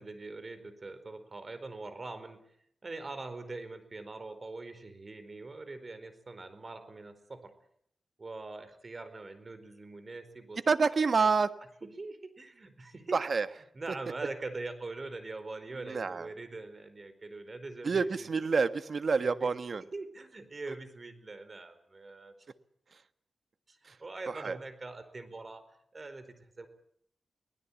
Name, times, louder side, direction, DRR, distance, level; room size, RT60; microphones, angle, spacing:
voice 1, 0.0-2.4 2.8-7.5 8.2-10.6 11.2-11.3 11.8-13.2 13.7-18.3 19.2-19.5 19.9-22.3 23.7-26.7, right 3 dB, 40° right, 11 dB, 4.6 m, -43 dB
voice 2, 10.7-11.5 13.1-13.5 15.8-16.3 17.8-19.8 23.8-24.0 24.3-24.6, right 4 dB, 55° right, 12 dB, 1.5 m, -28 dB
23.0 x 19.5 x 8.7 m, 0.69 s
wide cardioid pair, 85°, 0 cm